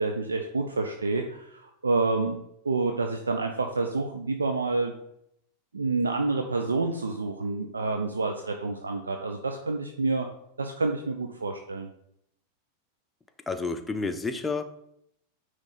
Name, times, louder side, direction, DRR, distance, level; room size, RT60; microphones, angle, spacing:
voice 1, 0.0-2.4 2.6-4.9 5.7-10.3 10.6-11.9, right 3 dB, 75° right, 4 dB, 0.5 m, -28 dB
voice 2, 13.5-14.6, left 4 dB, 10° left, 7 dB, 0.6 m, -30 dB
9.5 x 3.2 x 4.1 m, 0.75 s
figure-of-eight pair, 90°, 0 cm